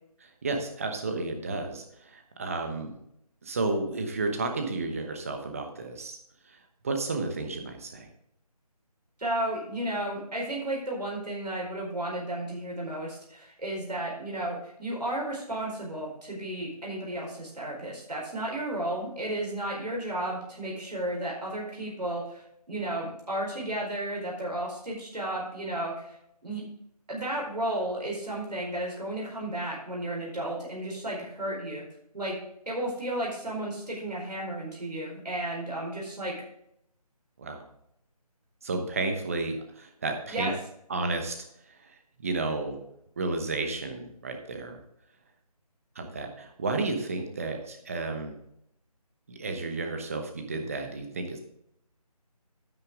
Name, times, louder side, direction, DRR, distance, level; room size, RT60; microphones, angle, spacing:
voice 1, 0.2-3.0 3.4-6.2 6.4-8.1 37.4-37.6 38.6-40.5 40.9-41.4 41.7-42.8 43.2-44.8 45.9-48.4 49.3-51.4, right 3 dB, 20° right, 5 dB, 1.0 m, -32 dB
voice 2, 9.2-26.2 26.4-26.6 27.1-31.8 32.1-32.4 32.7-36.3 40.3-40.5, right 1 dB, 85° right, -3 dB, 4.4 m, -33 dB
9.5 x 8.8 x 3.6 m, 0.75 s
figure-of-eight pair, 165°, 20 cm